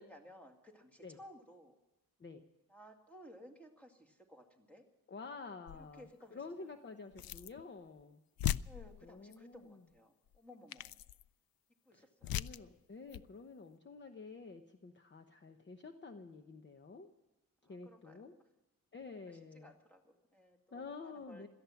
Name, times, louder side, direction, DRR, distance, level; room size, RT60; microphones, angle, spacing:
voice 1, 0.0-1.7 2.7-4.8 5.8-6.7 7.3-7.4 8.6-11.0 11.9-12.3 17.6-18.3 19.2-21.5, equal, 5° left, 3 dB, 2.3 m, -58 dB
voice 2, 5.1-8.2 9.0-9.8 11.9-12.0 12.3-17.1 17.6-18.3 18.9-19.7 20.7-21.5, left 4 dB, 30° left, 7 dB, 0.9 m, -50 dB
sound 1, 5.7-6.0 7.1-7.6 8.0-8.1 8.4-9.3 10.3-10.4 10.7-11.3 12.2-12.7 13.1-13.3, left 12 dB, 85° left, 0.5 m, -39 dB
17.5 x 13.5 x 5.9 m, 1.0 s
wide cardioid pair, 130°, 35 cm